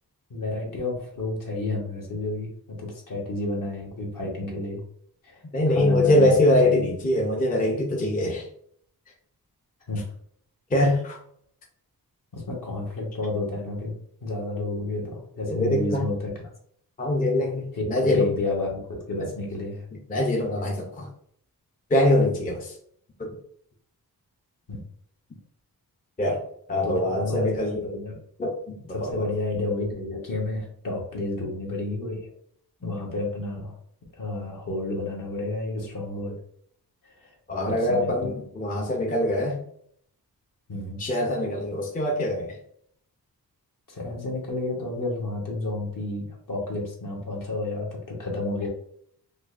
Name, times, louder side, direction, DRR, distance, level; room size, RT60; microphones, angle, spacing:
voice 1, 0.3-2.5 2.8-4.8 5.2-5.4 5.7-6.3 6.6-6.9 9.9-10.0 12.3-13.9 14.2-16.3 17.7-17.9 18.1-19.8 24.7-24.8 26.8-28.2 28.9-32.3 32.8-33.7 34.1-36.4 37.0-37.3 37.6-38.3 40.7-41.0 43.9-48.7, left 2 dB, 55° left, -2 dB, 1.2 m, -31 dB
voice 2, 5.5-8.5 10.7-11.2 15.5-16.1 17.0-18.3 19.2-19.3 20.1-21.1 21.9-22.8 23.2-23.3 26.2-26.4 26.7-27.8 28.4-29.2 32.8-33.0 37.5-39.6 41.0-42.6, left 1 dB, 20° left, -1 dB, 0.5 m, -23 dB
5.1 x 2.2 x 2.5 m, 0.66 s
wide cardioid pair, 140°, 38 cm